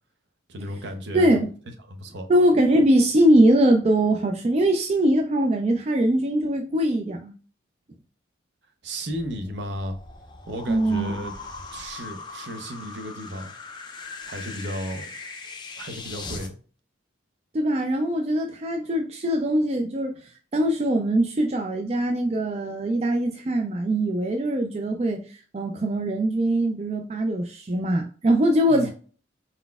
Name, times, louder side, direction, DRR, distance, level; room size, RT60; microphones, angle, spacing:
voice 1, 0.5-1.3 1.9-2.3 8.8-10.0 10.5-11.3 11.7-13.5 14.3-15.1 15.8-16.6 28.7-28.9, equal, 65° right, 0.7 m, -34 dB
voice 2, 1.1-1.5 2.3-7.3 10.7-11.3 17.5-20.2 20.5-28.9, right 1 dB, 35° right, 0.3 m, -22 dB
sound 1, 9.1-16.5, left 3 dB, 25° left, 0.5 m, -40 dB
4.3 x 4.0 x 2.3 m
head